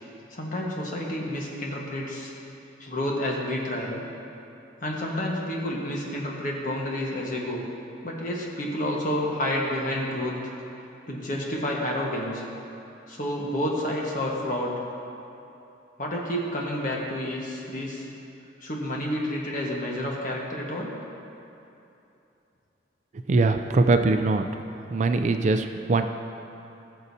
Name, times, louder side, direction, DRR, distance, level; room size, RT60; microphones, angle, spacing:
voice 1, 0.3-2.3 2.8-4.0 4.8-7.6 8.0-10.3 11.1-12.4 13.1-14.7 16.0-18.1 18.6-20.9, left 1 dB, 45° left, -2 dB, 1.3 m, -29 dB
voice 2, 23.3-24.4 24.9-26.1, right 3 dB, 35° right, 7 dB, 0.3 m, -22 dB
18.0 x 6.8 x 2.7 m, 2.8 s
head